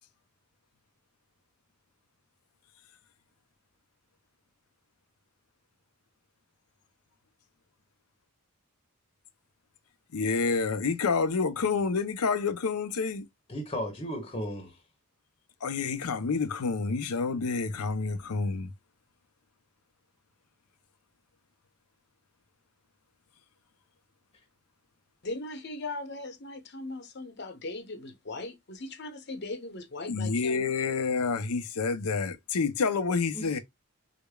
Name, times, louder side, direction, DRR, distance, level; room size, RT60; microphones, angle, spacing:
voice 1, 10.1-13.3 15.6-18.7 30.1-33.6, left 4 dB, 90° left, 0.6 m, -28 dB
voice 2, 13.5-14.8 33.3-33.6, equal, 25° left, 0.9 m, -35 dB
voice 3, 25.2-30.6, left 2 dB, 50° left, 0.8 m, -39 dB
4.9 x 2.1 x 2.2 m
head